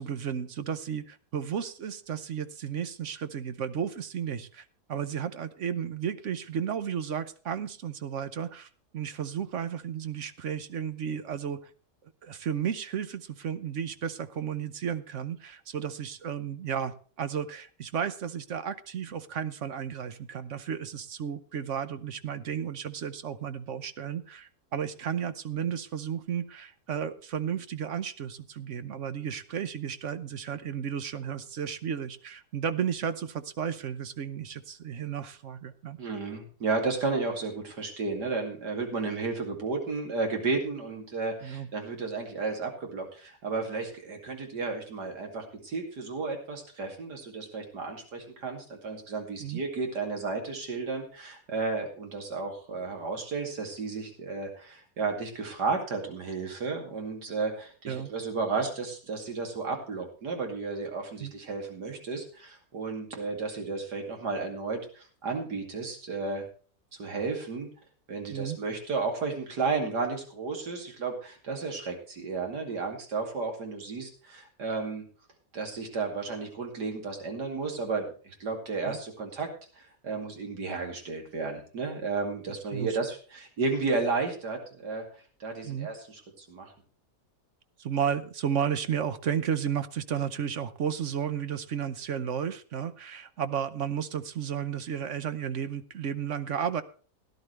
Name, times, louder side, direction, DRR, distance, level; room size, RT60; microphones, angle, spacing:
voice 1, 0.0-11.6 12.2-36.0 41.4-41.7 49.4-49.6 57.9-58.1 61.2-61.3 68.3-68.6 78.8-79.0 82.7-83.0 85.6-85.9 87.8-96.8, right 8 dB, 55° right, 12 dB, 1.0 m, -33 dB
voice 2, 36.0-66.4 67.0-67.7 68.1-75.0 75.5-79.5 79.8-85.0 85.4-86.7, right 4 dB, 85° right, 3 dB, 3.1 m, -33 dB
17.0 x 11.0 x 3.2 m, 0.40 s
omnidirectional pair, 1.7 m